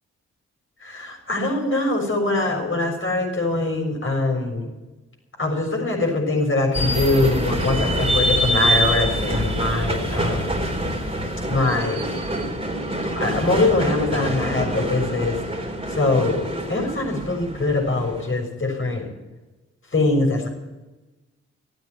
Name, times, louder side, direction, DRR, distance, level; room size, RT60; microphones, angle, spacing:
voice 1, 0.8-4.7 5.4-10.7 11.5-12.2 13.1-15.4 15.9-19.1 19.9-20.5, left 2 dB, 40° left, 1 dB, 6.7 m, -23 dB
sound 1, 6.7-18.3, equal, 15° right, 3.7 m, -25 dB
14.0 x 9.2 x 9.5 m, 1.1 s
hypercardioid pair, 40°, 31 cm